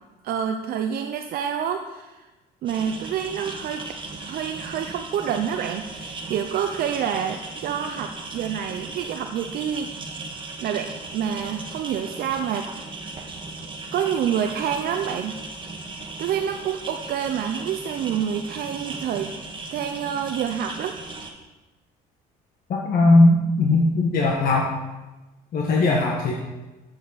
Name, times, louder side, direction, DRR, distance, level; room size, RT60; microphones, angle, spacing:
voice 1, 0.2-2.2 2.6-3.9 4.2-9.9 10.6-12.7 13.9-15.4 16.2-19.3 19.7-21.0, right 8 dB, 65° right, 5 dB, 0.7 m, -27 dB
sound 1, 2.7-21.3, right 3 dB, 30° right, 1.6 m, -37 dB
voice 2, 22.7-24.7 25.5-26.3, left 2 dB, 60° left, -2 dB, 1.5 m, -18 dB
12.5 x 7.2 x 4.1 m, 1.1 s
cardioid pair, 110°, 17 cm